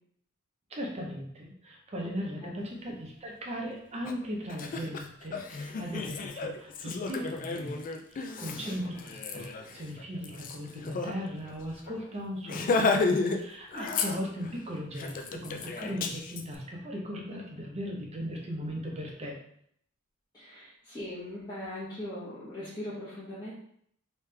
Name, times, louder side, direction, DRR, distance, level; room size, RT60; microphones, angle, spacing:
voice 1, 0.7-7.8 8.1-19.4, equal, 30° right, -1 dB, 0.8 m, -38 dB
voice 2, 2.3-2.7 8.6-9.1 13.7-13.9 20.3-23.5, left 1 dB, 20° left, -12 dB, 1.1 m, -40 dB
Laughter, 4.0-4.1 4.5-11.1 11.5-11.6 11.9-12.1 12.5-13.4 13.7-14.5 15.0-16.4, left 4 dB, 40° left, 0.3 m, -32 dB
3.2 x 3.1 x 3.3 m, 0.68 s
head